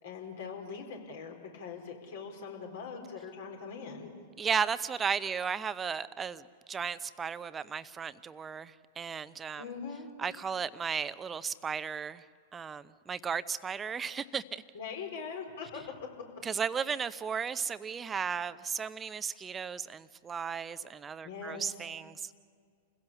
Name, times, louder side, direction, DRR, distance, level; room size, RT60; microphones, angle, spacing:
voice 1, 0.0-4.1 9.6-10.1 14.7-16.1 21.2-21.7, left 5 dB, 60° left, 2 dB, 4.2 m, -42 dB
voice 2, 4.4-9.6 10.2-12.2 12.5-14.6 16.4-22.3, right 6 dB, 20° right, 15 dB, 0.7 m, -35 dB
29.0 x 16.5 x 6.9 m, 2.1 s
figure-of-eight pair, 100°, 0 cm